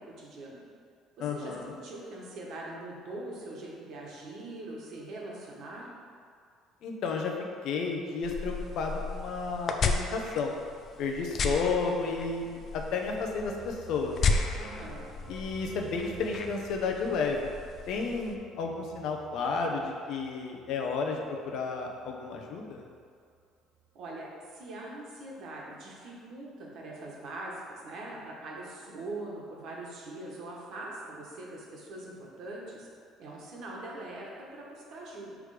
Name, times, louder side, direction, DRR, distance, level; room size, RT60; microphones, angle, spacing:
voice 1, 0.1-0.6 1.2-5.9 14.6-15.1 23.9-32.9 33.2-35.3, right 2 dB, 60° right, -3 dB, 1.3 m, -42 dB
voice 2, 1.2-1.7 6.8-7.3 7.6-10.5 11.0-14.1 15.3-17.5 17.9-22.8, left 4 dB, 65° left, 2 dB, 0.7 m, -32 dB
sound 1, 8.2-18.4, left 4 dB, 40° left, 0.4 m, -34 dB
sound 2, 12.9-23.4 23.7-23.9, right 5 dB, 35° right, 0.8 m, -52 dB
6.2 x 3.4 x 4.9 m, 2.2 s
cardioid pair, 130°, 0 cm